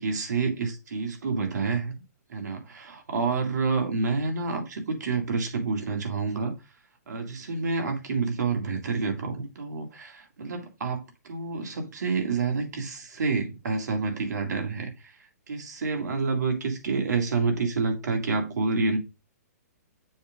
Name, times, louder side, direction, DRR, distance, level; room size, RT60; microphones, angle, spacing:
voice 1, 0.0-2.0 2.3-6.5 7.1-15.2 15.5-19.0, right 4 dB, 75° right, 2.2 m, -28 dB
6.9 x 3.6 x 5.1 m
hypercardioid pair, 140°, 9 cm